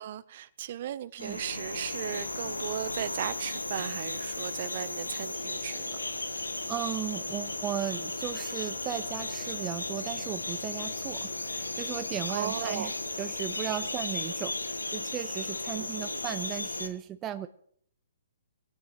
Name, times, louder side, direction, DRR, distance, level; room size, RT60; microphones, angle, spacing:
voice 1, 0.0-6.0 6.3-6.5 12.3-12.9 15.8-16.2, right 11 dB, 50° right, 17 dB, 0.8 m, -36 dB
sound 1, 1.2-16.9, left 2 dB, 85° left, 1.3 m, -35 dB
sound 2, 5.3-13.9, left 5 dB, 50° left, 7.4 m, -52 dB
voice 2, 6.6-17.5, right 11 dB, 20° right, 10 dB, 0.6 m, -36 dB
22.0 x 18.0 x 3.1 m, 0.64 s
figure-of-eight pair, 125°, 0 cm